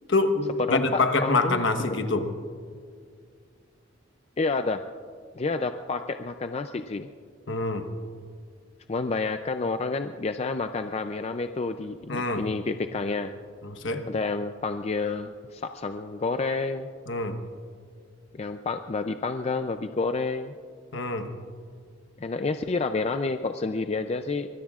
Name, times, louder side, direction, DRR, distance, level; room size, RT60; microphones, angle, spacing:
voice 1, 0.1-2.3 7.5-7.9 12.1-12.5 13.6-14.1 17.1-17.4 20.9-21.3, left 3 dB, 65° left, 7 dB, 1.1 m, -25 dB
voice 2, 0.7-1.6 4.4-4.8 5.4-7.1 8.9-13.3 14.1-16.9 18.3-20.5 22.2-24.5, left 3 dB, 30° left, 8 dB, 0.4 m, -29 dB
24.5 x 21.0 x 2.4 m, 2.1 s
head